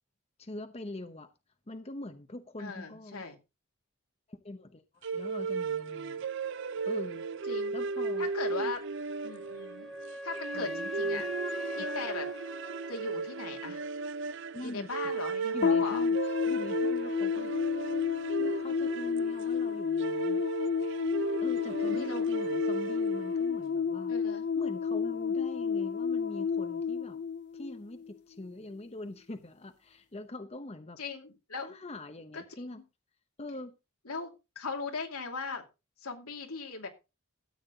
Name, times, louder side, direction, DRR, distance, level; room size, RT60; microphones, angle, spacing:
voice 1, 0.4-1.3 1.7-3.2 4.3-6.3 6.8-7.3 7.7-8.7 10.5-11.3 11.8-11.9 14.5-14.9 15.5-17.5 18.4-20.4 21.4-27.2 27.5-31.0 31.6-32.8 33.4-33.8, left 1 dB, 30° left, 8 dB, 0.8 m, -44 dB
voice 2, 2.6-3.4 7.5-7.7 8.2-8.8 9.2-9.9 10.2-11.3 11.7-12.3 12.9-13.8 14.6-16.0 21.9-22.3 24.1-24.4 31.0-31.7 32.3-32.8 34.1-35.6 36.0-36.9, left 4 dB, 90° left, 3 dB, 2.7 m, -39 dB
sound 1, 5.0-23.5, right 4 dB, 55° right, 0.5 m, -36 dB
Wind instrument woodwind instrument, 9.2-13.9, equal, ahead, 0.7 m, -40 dB
sound 2, 15.6-28.1, left 6 dB, 50° left, 0.5 m, -31 dB
13.5 x 8.7 x 3.9 m, 0.28 s
head